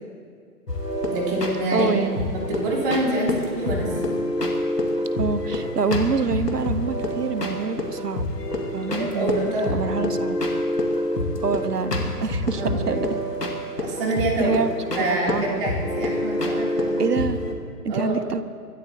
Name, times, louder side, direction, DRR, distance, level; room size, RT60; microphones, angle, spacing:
sound 1, 0.7-17.5, left 1 dB, 85° left, 2.3 m, -27 dB
voice 1, 1.1-1.9 2.3-3.9 8.8-10.0 12.6-13.0 13.8-14.6 15.0-17.1 17.9-18.2, right 1 dB, 35° right, -3 dB, 3.4 m, -26 dB
voice 2, 1.7-2.2 5.2-8.3 8.7-10.4 11.4-13.1 14.4-14.7 15.1-15.6 17.0-17.4 17.8-18.4, right 5 dB, 80° right, 13 dB, 1.0 m, -26 dB
24.5 x 12.5 x 3.0 m, 2.1 s
figure-of-eight pair, 130°, 47 cm